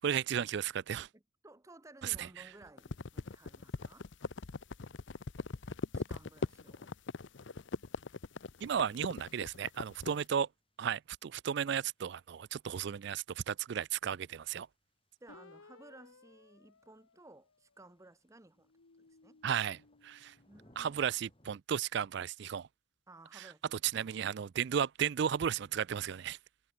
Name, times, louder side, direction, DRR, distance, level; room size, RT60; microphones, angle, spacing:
voice 1, 0.0-1.1 2.0-2.3 8.6-10.5 10.8-14.7 19.4-20.3 20.8-22.7 23.3-26.4, right 8 dB, 55° right, 0.3 m, -34 dB
voice 2, 1.1-4.1 5.9-6.9 15.2-18.7 19.1-19.4 20.5-20.9 23.1-24.3, right 2 dB, 15° right, 0.7 m, -57 dB
sound 1, 2.8-10.2, left 3 dB, 60° left, 0.7 m, -40 dB
sound 2, 5.7-21.6, equal, 25° left, 5.5 m, -72 dB
sound 3, 15.3-18.0 18.6-21.0, left 3 dB, 85° left, 1.1 m, -61 dB
head